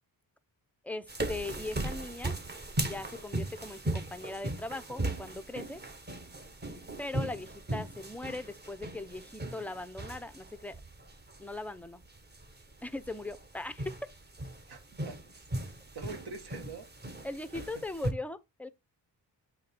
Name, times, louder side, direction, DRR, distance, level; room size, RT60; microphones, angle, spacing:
voice 1, 0.8-2.3 2.8-5.8 7.0-10.7 11.4-12.0 12.8-14.1 17.2-18.7, left 2 dB, 5° left, 0.5 m, -39 dB
sound 1, 1.1-18.1, right 1 dB, 25° right, 1.1 m, -38 dB
voice 2, 14.7-15.7 15.9-16.9 17.5-17.8, right 4 dB, 65° right, 1.5 m, -45 dB
7.6 x 2.9 x 4.3 m
cardioid pair, 80°, 43 cm